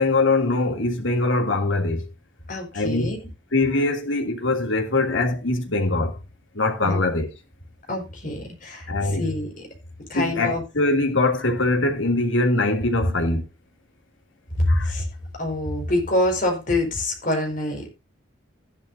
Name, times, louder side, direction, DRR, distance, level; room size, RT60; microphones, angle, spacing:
voice 1, 0.0-2.1 2.7-3.1 3.5-6.2 6.5-7.3 8.9-9.3 10.1-13.4 14.7-14.9, left 2 dB, 75° left, 2.9 m, -22 dB
voice 2, 2.5-3.2 6.8-7.0 7.9-9.5 10.1-10.6 14.6-15.0 15.3-17.9, left 1 dB, 40° left, 5.1 m, -25 dB
14.5 x 11.0 x 2.7 m
head